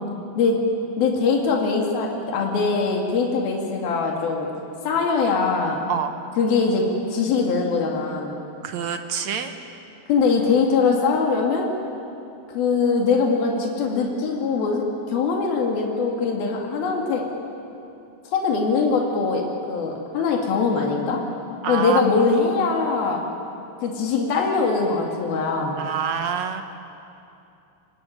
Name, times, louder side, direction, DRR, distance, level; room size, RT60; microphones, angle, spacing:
voice 1, 1.0-4.5 4.8-5.8 6.4-6.8 7.1-8.4 10.1-11.7 12.5-17.2 18.3-21.2 21.7-23.2 23.8-25.8, left 4 dB, 80° left, 0 dB, 4.3 m, -22 dB
voice 2, 8.6-9.5 21.6-22.0 25.8-26.6, right 8 dB, 65° right, 7 dB, 1.9 m, -26 dB
24.5 x 21.0 x 9.9 m, 2.7 s
omnidirectional pair, 4.2 m